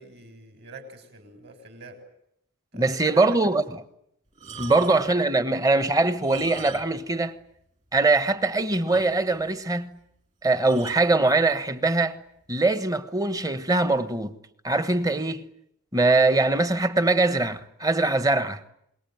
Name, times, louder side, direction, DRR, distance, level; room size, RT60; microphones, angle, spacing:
voice 1, 0.0-2.0 2.7-3.2 4.6-4.8, right 3 dB, 50° right, 6.5 m, -45 dB
voice 2, 2.7-3.8 4.6-7.4 7.9-10.0 10.4-12.2 12.5-14.4 14.6-15.5 15.9-18.6, right 2 dB, 15° right, 1.2 m, -22 dB
sound 1, 4.3-5.2 6.1-7.1 7.4-7.5 8.0-8.1 8.4-8.5 8.9-9.5 10.6-11.1 12.0-12.2, right 6 dB, 35° right, 3.0 m, -43 dB
27.5 x 21.5 x 9.2 m
head